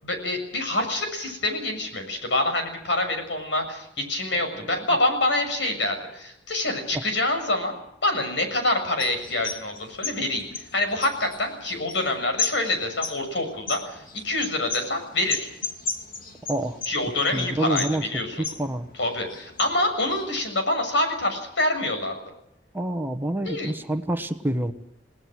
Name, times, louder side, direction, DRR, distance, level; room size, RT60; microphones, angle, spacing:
voice 1, 0.0-7.7 8.0-15.5 16.9-18.4 19.0-22.2 23.4-23.7, left 2 dB, 75° left, 6 dB, 6.9 m, -26 dB
sound 1, 9.0-20.5, left 5 dB, 50° left, 2.8 m, -36 dB
voice 2, 16.5-16.8 17.3-18.1 18.4-18.9 22.7-24.7, right 1 dB, 10° right, 7 dB, 1.2 m, -27 dB
29.0 x 19.0 x 6.2 m, 0.79 s
head